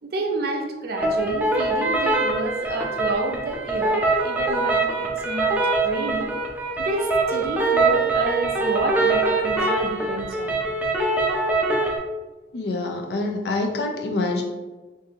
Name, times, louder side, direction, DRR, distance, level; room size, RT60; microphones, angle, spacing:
voice 1, 0.0-6.3 6.8-10.6, right 2 dB, 60° right, 3 dB, 0.5 m, -29 dB
sound 1, 1.0-12.0, right 3 dB, 10° right, 0.5 m, -23 dB
voice 2, 12.5-14.4, left 2 dB, 70° left, 2 dB, 0.5 m, -26 dB
3.6 x 2.7 x 2.9 m, 1.2 s
head